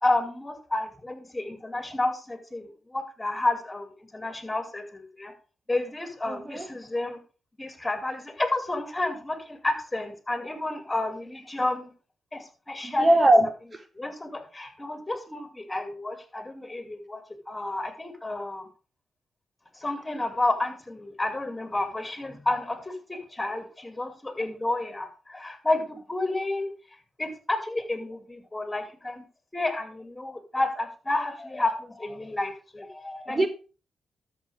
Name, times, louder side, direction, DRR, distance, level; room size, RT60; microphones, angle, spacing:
voice 1, 0.0-5.3 5.7-7.2 7.6-11.9 12.3-13.1 13.9-18.7 19.8-26.7 27.2-29.2 29.5-33.5, left 2 dB, 20° left, 2.4 m, -30 dB
voice 2, 6.3-6.7 12.8-13.8 33.3-33.5, right 1 dB, 35° right, 0.9 m, -21 dB
13.0 x 6.2 x 3.4 m
supercardioid pair, 50°, 0 cm